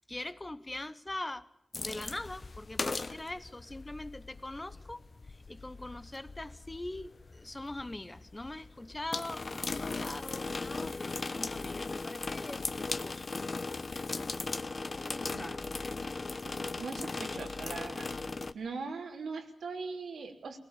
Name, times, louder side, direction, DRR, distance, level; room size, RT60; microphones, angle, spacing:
voice 1, 0.1-1.5 1.8-5.0 5.3-13.3 14.9-15.6, left 1 dB, 20° left, 13 dB, 1.0 m, -42 dB
sound 1, 1.7-18.5, left 3 dB, 40° left, 1.1 m, -38 dB
Frying (food), 9.2-14.5, left 4 dB, 70° left, 3.1 m, -55 dB
voice 2, 16.4-18.1 18.5-20.6, right 4 dB, 85° right, 3 dB, 3.2 m, -40 dB
21.0 x 19.5 x 7.3 m, 0.80 s
wide cardioid pair, 85°, 0 cm